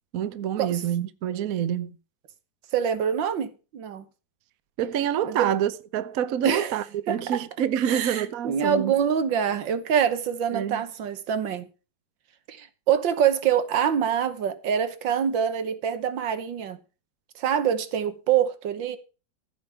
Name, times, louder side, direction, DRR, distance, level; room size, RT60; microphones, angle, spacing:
voice 1, 0.1-1.9 4.8-8.9 10.5-10.8, right 10 dB, 60° right, 1.0 m, -27 dB
voice 2, 2.7-4.1 5.2-5.5 6.4-6.7 7.1-7.4 7.8-11.7 12.5-16.8 17.4-19.0, right 8 dB, 75° right, 1.8 m, -25 dB
15.0 x 5.2 x 6.9 m
omnidirectional pair, 2.0 m